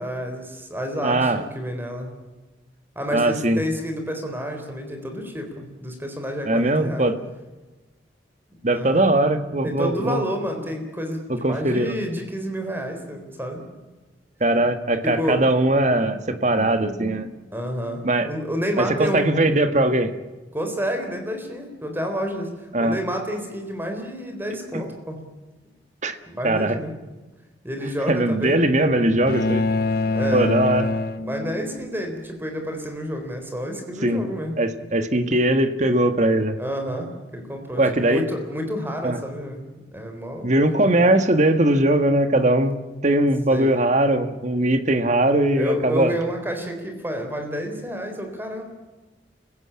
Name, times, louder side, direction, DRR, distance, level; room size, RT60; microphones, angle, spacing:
voice 1, 0.0-2.1 3.0-7.1 8.5-9.0 9.6-13.6 15.0-15.5 17.5-19.3 20.5-25.2 26.3-26.9 27.6-28.6 30.1-30.5 31.2-34.6 34.8-34.9 36.6-41.1 43.5-43.8 45.5-48.6, equal, 10° right, 4 dB, 4.0 m, -29 dB
voice 2, 1.0-1.4 3.1-3.6 6.5-7.2 8.6-10.2 11.3-11.9 14.4-17.3 18.0-18.3 18.8-20.1 22.7-23.0 24.7-24.9 26.0-26.2 26.4-26.8 28.1-29.6 30.3-30.9 34.0-34.2 34.6-36.6 37.8-38.2 39.0-39.2 40.4-46.1, right 1 dB, 40° right, 9 dB, 1.6 m, -20 dB
sound 1, 29.3-31.8, left 3 dB, 55° left, 1.1 m, -24 dB
29.0 x 16.5 x 8.8 m, 1.2 s
head